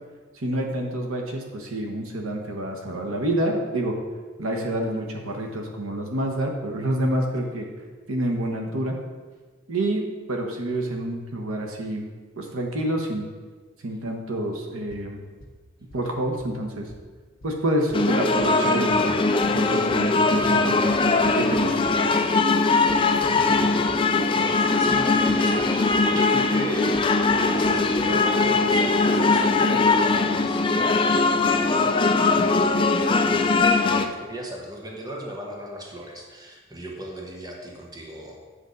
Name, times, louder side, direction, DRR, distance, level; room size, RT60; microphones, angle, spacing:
voice 1, 0.3-4.0 4.4-7.7 8.1-9.0 9.7-12.0 12.4-13.3 13.8-15.2 15.9-16.9 17.4-19.0 19.4-21.8, right 1 dB, 85° right, 2 dB, 1.2 m, -28 dB
sound 1, 14.9-15.0 15.4-15.5 15.9-16.0 16.4-16.5 16.9-17.0 17.4-17.5 17.9-18.0 18.4-18.5 18.9-19.0 19.4-19.5 19.9-20.0 20.4-20.5 20.9-21.9 22.9-24.0 24.9-25.0 25.3-25.7 25.9-26.0 26.9-27.0 27.3-27.4 27.6-27.7 28.0-28.1, equal, 45° left, 1.2 m, -44 dB
sound 2, 17.9-34.1, left 3 dB, 25° left, 0.4 m, -21 dB
voice 2, 24.2-27.0 27.3-38.4, right 1 dB, 20° right, 0 dB, 1.0 m, -37 dB
8.1 x 6.4 x 4.0 m, 1.4 s
head